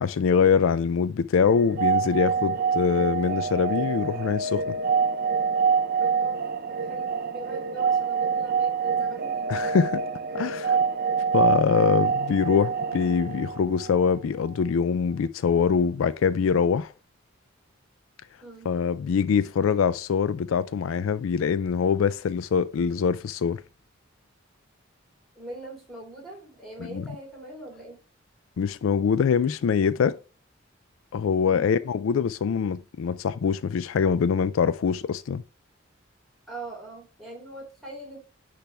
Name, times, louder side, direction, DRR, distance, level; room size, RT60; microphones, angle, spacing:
voice 1, 0.0-4.8 9.5-10.0 10.3-10.7 11.3-16.9 18.7-23.6 26.9-27.0 28.6-30.2 31.1-35.4, left 6 dB, 75° left, 0.4 m, -24 dB
sound 1, 1.4-14.2, right 6 dB, 45° right, 0.4 m, -26 dB
voice 2, 6.0-9.6 10.4-10.9 18.4-18.8 25.3-28.0 31.5-31.7 36.5-38.2, right 1 dB, ahead, 3.2 m, -42 dB
10.0 x 3.4 x 3.4 m
head